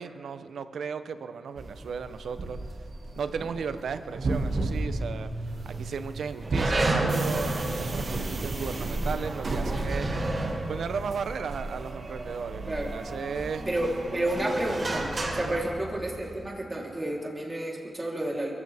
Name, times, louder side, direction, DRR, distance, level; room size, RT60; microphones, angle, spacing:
voice 1, 0.0-2.6 3.2-5.3 5.6-10.1 10.7-13.6 15.3-15.6, right 6 dB, 85° right, 11 dB, 0.7 m, -35 dB
sound 1, 1.6-15.6, right 2 dB, 60° right, 1.9 m, -34 dB
sound 2, 4.5-5.3 5.7-5.8 6.4-12.6 13.1-16.5, right 2 dB, 45° right, 2.6 m, -32 dB
voice 2, 13.6-18.5, right 1 dB, 30° right, -2 dB, 3.3 m, -31 dB
23.0 x 15.5 x 3.5 m, 2.3 s
cardioid pair, 65°, 0 cm